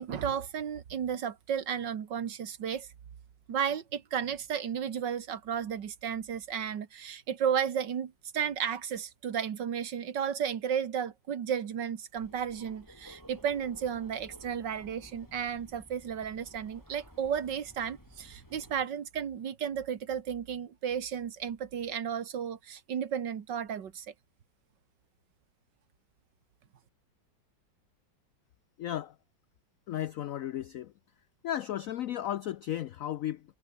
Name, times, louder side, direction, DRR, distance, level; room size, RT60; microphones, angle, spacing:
voice 1, 0.0-2.9 3.5-24.1, right 8 dB, 70° right, 2.1 m, -33 dB
sound 1, 12.1-18.8, equal, 10° left, 6.2 m, -54 dB
voice 2, 28.8-29.1 29.9-30.9 31.4-33.4, left 11 dB, 75° left, 0.7 m, -34 dB
omnidirectional pair, 2.0 m